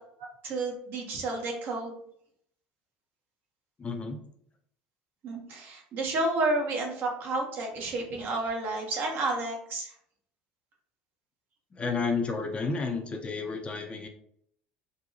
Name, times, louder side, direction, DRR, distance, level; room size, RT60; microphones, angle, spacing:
voice 1, 0.4-2.0 5.2-9.9, right 2 dB, 50° right, 1 dB, 1.0 m, -31 dB
voice 2, 3.8-4.2 11.7-14.1, left 4 dB, 25° left, 3 dB, 0.6 m, -31 dB
3.8 x 2.2 x 2.8 m, 0.67 s
supercardioid pair, 95°, 4 cm